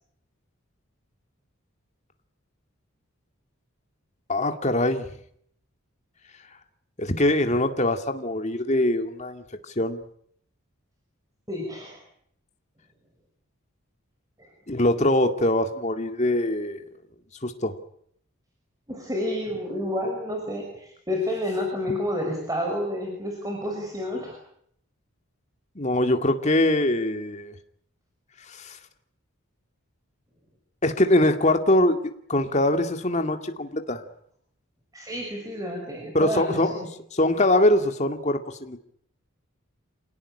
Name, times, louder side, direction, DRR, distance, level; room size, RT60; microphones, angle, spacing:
voice 1, 4.3-5.1 7.0-9.4 9.8-10.0 14.7-16.8 17.4-17.7 25.8-27.5 28.5-28.8 30.8-34.0 36.1-36.8 37.1-38.8, left 1 dB, 30° left, 6 dB, 2.3 m, -23 dB
voice 2, 11.5-12.0 14.4-14.5 18.9-24.4 34.9-36.9, left 1 dB, 15° right, 1 dB, 5.7 m, -30 dB
27.5 x 18.0 x 10.0 m, 0.69 s
head